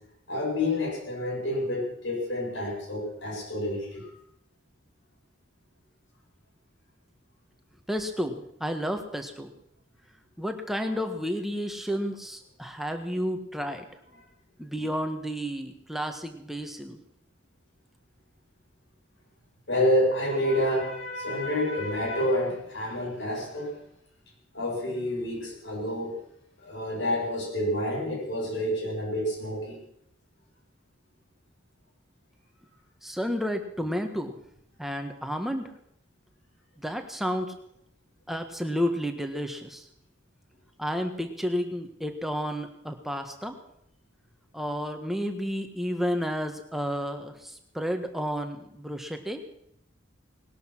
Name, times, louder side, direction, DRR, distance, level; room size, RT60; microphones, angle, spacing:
voice 1, 0.3-4.1 19.7-23.7 24.5-26.2 26.6-29.8, left 1 dB, 70° left, -2 dB, 7.7 m, -28 dB
voice 2, 7.9-9.5 10.4-13.8 14.6-17.0 33.0-34.4 34.8-35.7 36.8-37.5 38.3-39.9 40.8-43.6 44.5-49.4, equal, ahead, 5 dB, 1.5 m, -31 dB
19.5 x 12.0 x 6.1 m, 0.74 s
head